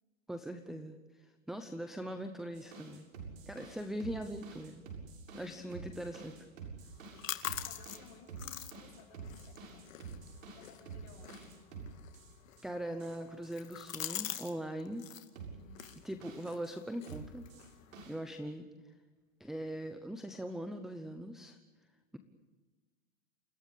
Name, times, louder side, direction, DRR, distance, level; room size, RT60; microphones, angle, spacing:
voice 1, 0.3-3.1 3.5-4.8 5.3-6.5 12.6-15.0 16.0-17.4 18.1-18.6 19.4-21.6, right 1 dB, ahead, 8 dB, 0.7 m, -41 dB
sound 1, 2.5-12.7 13.0-13.5 13.9-14.4 15.4-16.7 17.1-18.2, right 5 dB, 80° right, 7.3 m, -49 dB
voice 2, 5.3-5.8 7.1-10.0 10.4-11.5 15.5-15.8 17.8-18.2, left 5 dB, 35° left, 3 dB, 7.4 m, -60 dB
sound 2, 6.8-14.5 14.8-15.3 15.7-18.0, left 11 dB, 80° left, 2.4 m, -45 dB
28.5 x 16.5 x 8.5 m, 1.3 s
supercardioid pair, 155°, 39 cm